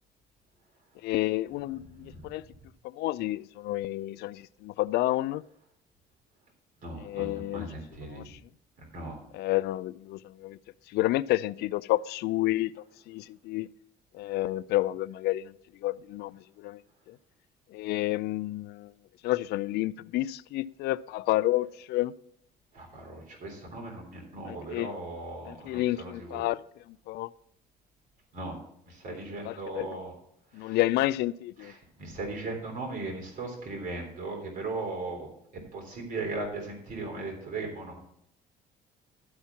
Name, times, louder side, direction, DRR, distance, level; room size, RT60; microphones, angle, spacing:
voice 1, 1.0-2.4 2.8-5.4 7.0-7.7 8.1-8.4 9.3-10.6 10.9-13.7 14.1-15.5 15.8-16.8 17.1-17.2 17.7-18.9 19.2-22.1 24.5-24.9 25.4-26.6 26.9-27.3 29.4-30.0 30.5-31.7, left 16 dB, 75° left, 0.4 m, -30 dB
voice 2, 2.0-2.3 6.8-8.3 8.8-9.2 22.7-26.4 28.3-28.5 28.9-30.1 30.5-30.8 31.6-35.3 35.7-38.0, right 3 dB, 55° right, 3.5 m, -38 dB
12.0 x 4.4 x 7.0 m
cardioid pair, 110°, 17 cm